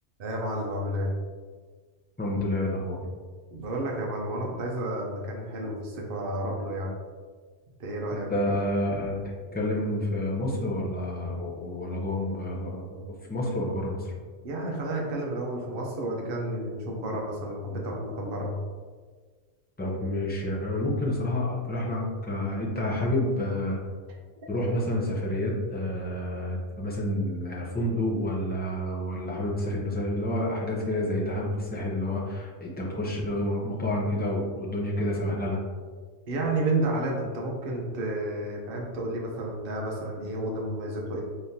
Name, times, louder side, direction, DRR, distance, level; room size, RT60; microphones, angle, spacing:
voice 1, 0.2-1.1 3.5-7.0 7.8-8.6 14.4-18.6 36.3-41.2, right 1 dB, 55° right, -1 dB, 0.9 m, -31 dB
voice 2, 2.2-3.0 8.1-9.2 9.5-13.0 13.3-14.1 19.8-23.8 24.5-35.6, left 1 dB, 10° left, -4 dB, 0.4 m, -29 dB
3.8 x 3.2 x 2.7 m, 1.5 s
omnidirectional pair, 1.2 m